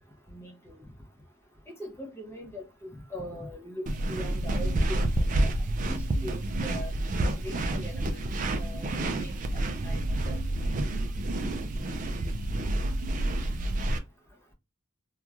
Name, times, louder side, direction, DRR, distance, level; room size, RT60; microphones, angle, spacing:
voice 1, 0.3-0.7 1.8-5.5 5.8-6.9 7.2-8.2 8.5-8.9 9.2-10.0 10.3-10.7 11.4-11.5, equal, 10° left, 0.7 m, -41 dB
sound 1, 3.9-14.0, right 1 dB, 35° right, 0.3 m, -29 dB
3.0 x 2.3 x 2.3 m
head